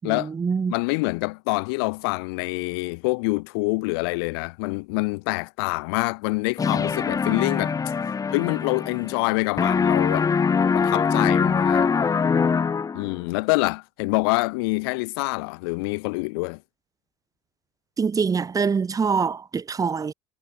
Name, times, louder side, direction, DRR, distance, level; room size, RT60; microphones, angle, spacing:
voice 1, 0.0-0.7 18.0-20.1, right 5 dB, 25° right, 5.3 m, -24 dB
voice 2, 0.7-7.8 8.3-10.3 10.7-11.9 12.9-16.6, left 28 dB, 65° left, 3.7 m, -26 dB
sound 1, 6.6-9.3 9.6-13.2, left 5 dB, 25° left, 2.5 m, -23 dB
hypercardioid pair, 75°, 13 cm